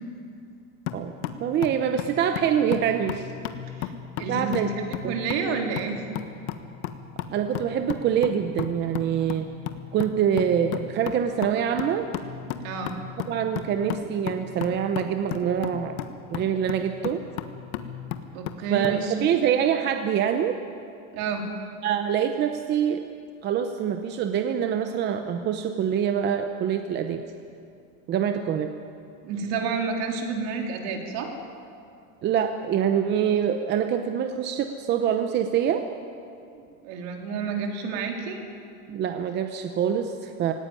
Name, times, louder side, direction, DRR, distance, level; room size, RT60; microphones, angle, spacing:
sound 1, 0.9-19.0, left 10 dB, 85° left, 1.5 m, -35 dB
voice 1, 1.4-3.3 4.3-4.7 5.0-5.1 7.3-9.5 9.9-12.1 13.3-16.0 16.3-17.2 18.7-20.6 21.8-23.0 23.4-27.2 28.1-28.7 32.2-35.8 38.9-40.5, right 8 dB, 25° right, 7 dB, 0.7 m, -25 dB
voice 2, 4.2-6.0 12.6-12.9 18.3-19.1 21.1-21.4 29.2-31.3 36.8-38.4, right 5 dB, 55° right, 2 dB, 3.3 m, -30 dB
17.5 x 17.5 x 9.8 m, 2.4 s
supercardioid pair, 160°, 41 cm